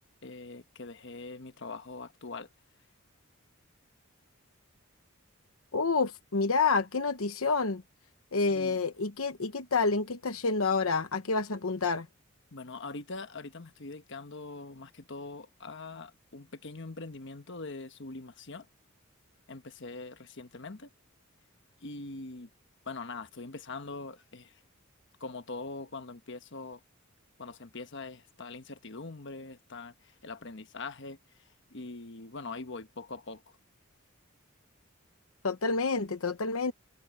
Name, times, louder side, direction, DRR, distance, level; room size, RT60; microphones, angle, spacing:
voice 1, 0.2-2.5 8.5-8.8 12.5-18.7 19.5-20.9 21.8-22.5 22.8-24.6 25.2-26.8 27.4-33.6, left 3 dB, 55° left, 1.3 m, -43 dB
voice 2, 5.7-7.8 8.3-12.1 35.4-36.7, left 4 dB, 80° left, 1.0 m, -28 dB
head